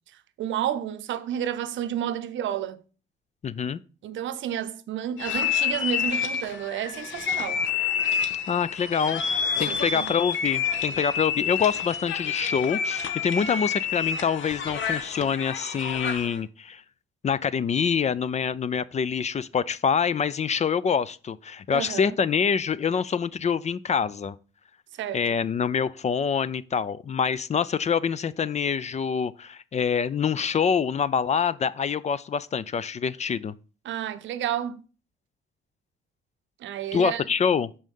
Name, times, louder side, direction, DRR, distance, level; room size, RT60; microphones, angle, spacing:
voice 1, 0.4-2.8 4.0-7.6 9.6-10.1 21.7-22.2 25.0-25.2 33.8-34.8 36.6-37.2, right 10 dB, 75° right, 0.7 m, -31 dB
voice 2, 3.4-3.8 8.5-16.8 17.2-24.4 25.1-33.5 36.9-37.7, left 6 dB, 35° left, 0.4 m, -26 dB
sound 1, 5.2-16.4, left 7 dB, 70° left, 1.1 m, -28 dB
6.4 x 5.5 x 5.4 m
cardioid pair, 90°, 20 cm